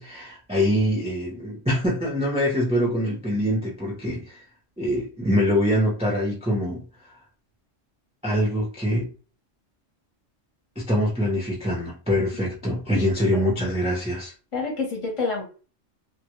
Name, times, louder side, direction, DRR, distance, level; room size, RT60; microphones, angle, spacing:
voice 1, 0.0-4.4 4.8-6.8 8.2-9.1 10.8-14.3, equal, 10° right, 0.3 m, -24 dB
voice 2, 12.9-13.7 14.5-15.4, left 3 dB, 30° left, 0.6 m, -29 dB
2.1 x 2.1 x 2.9 m
omnidirectional pair, 1.3 m